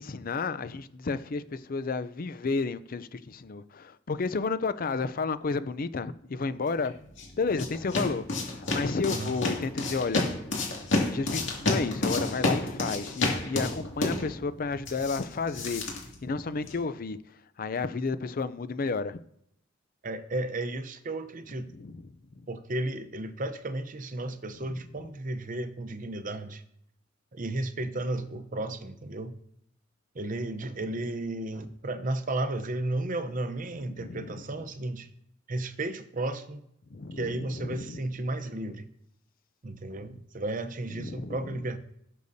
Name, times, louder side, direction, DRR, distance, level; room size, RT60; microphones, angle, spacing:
voice 1, 0.0-6.9 7.4-10.3 11.1-15.8 16.2-17.2 17.6-19.2 21.7-22.1 33.9-34.3 36.9-38.0 40.9-41.6, left 4 dB, 45° left, 0.5 m, -32 dB
sound 1, 6.8-16.9, left 2 dB, 65° left, 2.3 m, -31 dB
voice 2, 20.0-21.7 22.5-26.6 27.3-29.4 30.1-35.1 35.5-36.6 37.2-38.9 39.6-41.8, right 2 dB, 40° right, 0.7 m, -33 dB
18.0 x 6.5 x 2.7 m
head